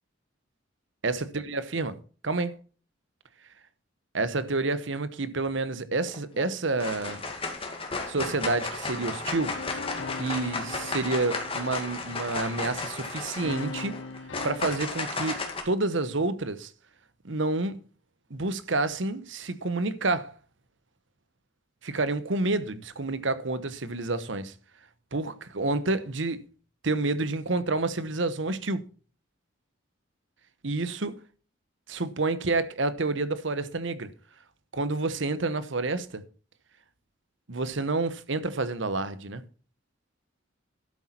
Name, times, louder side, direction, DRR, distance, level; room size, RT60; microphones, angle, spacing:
voice 1, 1.0-2.0 2.2-2.6 4.1-7.2 8.1-9.5 10.2-14.0 14.4-16.7 17.2-17.8 18.3-20.3 21.8-24.5 25.1-26.4 26.8-28.8 30.6-31.1 31.9-34.1 34.7-36.2 37.5-39.4, right 3 dB, 65° right, 1.1 m, -29 dB
sound 1, 6.1-6.5 6.8-15.6, left 3 dB, 30° left, 2.2 m, -34 dB
sound 2, 9.3-12.5 13.4-14.8, left 4 dB, 70° left, 0.6 m, -40 dB
12.0 x 8.2 x 4.4 m
head